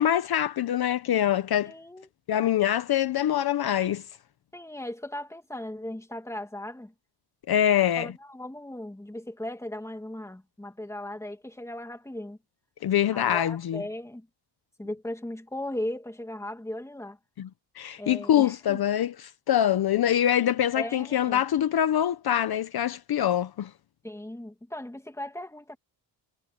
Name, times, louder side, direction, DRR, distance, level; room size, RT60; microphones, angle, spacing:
voice 1, 0.0-1.7 2.3-4.0 7.5-8.1 12.8-13.8 17.4-17.5 17.8-23.7, left 10 dB, 55° left, 0.9 m, -24 dB
voice 2, 1.7-2.1 4.5-6.9 8.0-12.4 13.1-14.3 14.8-17.2 18.0-18.8 20.7-21.4 24.0-25.8, left 1 dB, 5° left, 2.5 m, -37 dB
cardioid pair, 140°, 45 cm